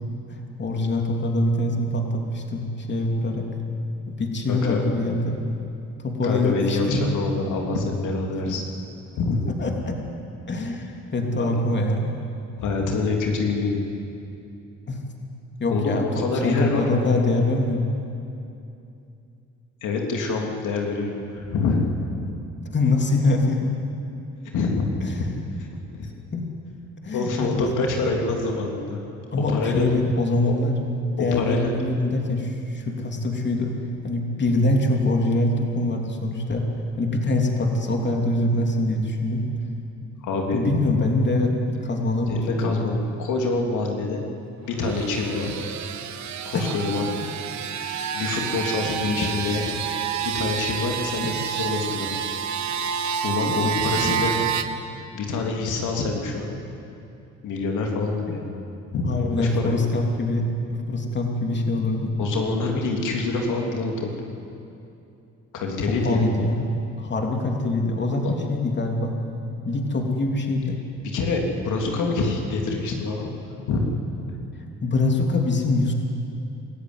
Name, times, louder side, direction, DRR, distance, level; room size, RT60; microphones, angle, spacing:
voice 1, 0.3-3.5 4.1-5.4 6.0-7.0 8.5-8.6 9.6-10.0 10.5-12.1 14.9-15.0 15.6-17.8 22.7-23.8 25.0-25.4 26.3-26.5 27.0-27.7 29.3-30.7 31.2-33.7 34.0-36.7 37.0-39.4 40.5-42.8 46.5-46.6 49.0-49.2 51.2-51.3 53.5-53.6 54.1-54.2 58.2-58.4 59.0-60.5 60.9-62.1 65.9-66.7 67.0-69.1 69.6-70.8 74.8-75.9, left 2 dB, 35° left, 2 dB, 3.1 m, -24 dB
voice 2, 4.5-4.8 6.2-8.6 9.2-9.4 11.4-11.5 12.6-13.8 15.7-16.9 19.8-21.8 24.5-24.9 25.6-26.1 27.1-29.0 29.3-29.9 30.4-30.5 31.2-31.7 40.2-40.6 42.3-44.2 44.6-45.6 46.4-47.1 48.1-49.7 50.2-52.1 52.8-52.9 53.2-54.3 55.1-56.5 57.4-58.5 58.9-59.1 59.4-59.8 61.5-61.6 62.2-64.1 65.5-66.3 68.2-68.4 71.0-73.3 73.7-73.8, left 3 dB, 80° left, 1 dB, 3.1 m, -26 dB
sound 1, 44.7-54.6, right 8 dB, 70° right, 1.5 m, -28 dB
26.0 x 14.5 x 9.7 m, 2.7 s
cardioid pair, 90°, 30 cm